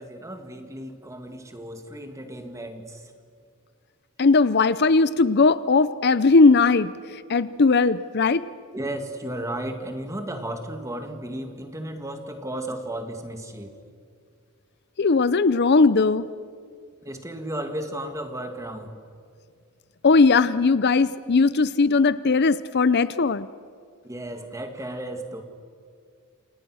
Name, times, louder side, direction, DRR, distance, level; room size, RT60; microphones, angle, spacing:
voice 1, 0.0-3.1 8.7-13.8 17.0-19.0 24.0-25.4, right 1 dB, 15° right, 6 dB, 2.2 m, -34 dB
voice 2, 4.2-6.9 7.3-8.4 15.0-16.3 20.0-23.5, left 4 dB, 50° left, 15 dB, 0.6 m, -18 dB
29.0 x 27.5 x 6.4 m, 2.2 s
head